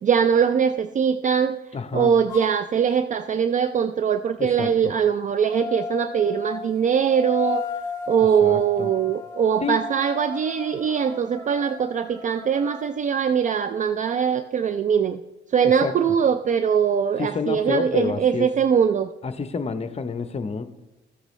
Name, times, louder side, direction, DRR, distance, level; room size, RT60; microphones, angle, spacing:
voice 1, 0.0-1.6 1.9-7.6 8.1-15.2 15.5-19.1, right 7 dB, 40° right, 11 dB, 0.4 m, -22 dB
voice 2, 1.7-2.1 4.4-4.9 8.4-8.9 9.6-9.8 15.6-15.9 17.2-18.5 19.2-20.6, left 5 dB, 30° left, 10 dB, 0.8 m, -28 dB
sound 1, 2.3-2.5 5.5-12.9, left 5 dB, 15° left, 3.0 m, -35 dB
14.0 x 8.1 x 3.1 m, 1.0 s
cardioid pair, 90°, 20 cm